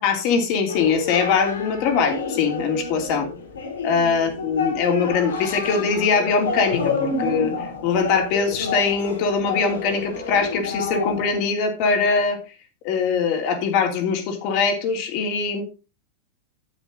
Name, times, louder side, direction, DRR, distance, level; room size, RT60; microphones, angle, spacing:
voice 1, 0.0-3.3 3.8-12.4 12.8-15.6, left 5 dB, 55° left, 4 dB, 3.1 m, -22 dB
sound 1, 0.7-11.4, left 4 dB, 85° left, 3.1 m, -29 dB
10.0 x 8.2 x 3.9 m, 0.30 s
hypercardioid pair, 100°, 0 cm